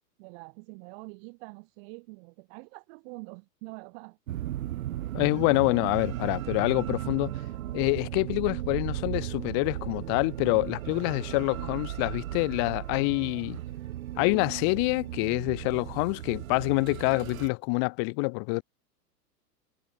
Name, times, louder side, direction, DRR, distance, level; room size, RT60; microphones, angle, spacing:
voice 1, 0.2-4.2, right 33 dB, 40° right, 3.4 m, -45 dB
sound 1, 4.3-17.5, right 13 dB, 60° right, 0.7 m, -36 dB
voice 2, 5.1-7.3 7.7-13.6 14.2-18.6, left 37 dB, 20° left, 0.4 m, -26 dB
figure-of-eight pair, 100°, 48 cm